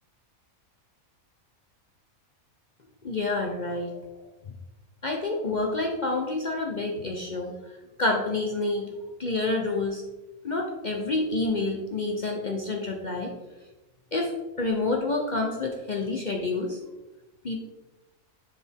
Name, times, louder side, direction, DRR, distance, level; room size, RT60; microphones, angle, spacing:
voice 1, 3.0-4.0 5.0-7.6 8.0-8.9 9.2-10.0 10.4-13.3 14.1-14.3 14.6-16.8 17.4-17.6, left 2 dB, 40° left, 1 dB, 0.7 m, -28 dB
7.1 x 5.1 x 3.6 m, 1.1 s
omnidirectional pair, 1.5 m